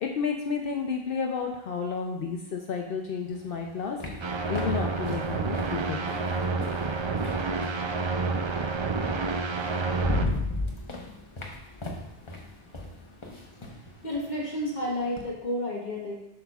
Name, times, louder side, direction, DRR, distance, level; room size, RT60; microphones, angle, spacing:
voice 1, 0.0-6.2, left 5 dB, 65° left, 1 dB, 0.7 m, -32 dB
sound 1, 3.3-7.9 9.1-9.2 9.6-15.3, left 2 dB, 30° left, 0.8 m, -36 dB
sound 2, 4.2-10.3, right 4 dB, 50° right, 0.3 m, -29 dB
voice 2, 14.0-16.2, left 1 dB, 50° left, -2 dB, 1.1 m, -31 dB
7.9 x 6.5 x 2.3 m, 0.89 s
omnidirectional pair, 1.1 m